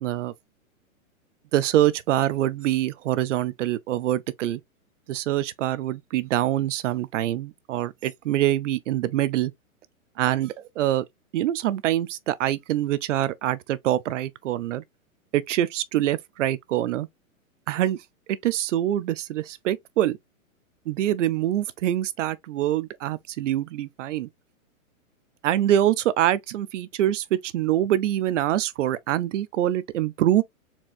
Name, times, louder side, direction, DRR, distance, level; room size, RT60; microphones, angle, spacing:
voice 1, 0.0-0.3 1.5-4.6 5.1-9.5 10.2-11.0 11.3-14.8 15.3-17.1 17.7-18.0 18.3-20.2 20.9-24.3 25.4-30.4, right 12 dB, 60° right, 0.6 m, -25 dB
4.5 x 2.9 x 2.4 m
hypercardioid pair, 135°, 43 cm